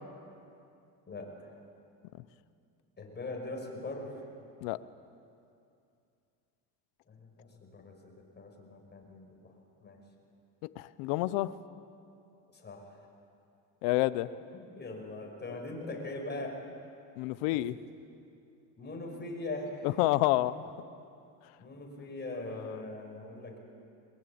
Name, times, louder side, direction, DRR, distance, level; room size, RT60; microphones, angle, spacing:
voice 1, 1.1-1.6 3.0-4.3 7.1-9.5 9.8-10.0 12.5-13.0 14.5-16.6 17.5-17.6 18.8-19.9 21.6-23.6, left 2 dB, 25° left, 1 dB, 5.7 m, -41 dB
voice 2, 10.6-11.5 13.8-14.3 17.2-17.8 20.0-20.7, left 17 dB, 75° left, 16 dB, 1.0 m, -28 dB
22.0 x 21.5 x 8.7 m, 2.5 s
supercardioid pair, 110°, 45 cm